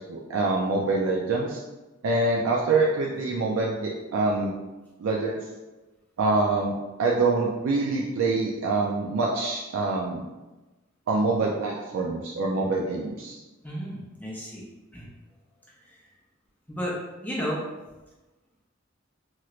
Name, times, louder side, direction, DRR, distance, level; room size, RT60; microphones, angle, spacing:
voice 1, 0.1-1.6 2.0-4.5 5.0-5.4 6.2-10.3 11.1-13.4, right 3 dB, 80° right, -2 dB, 0.4 m, -25 dB
voice 2, 13.6-14.6 14.9-15.1 16.7-16.9 17.2-17.6, equal, 10° left, -5 dB, 0.5 m, -32 dB
3.0 x 3.0 x 2.4 m, 1.1 s
head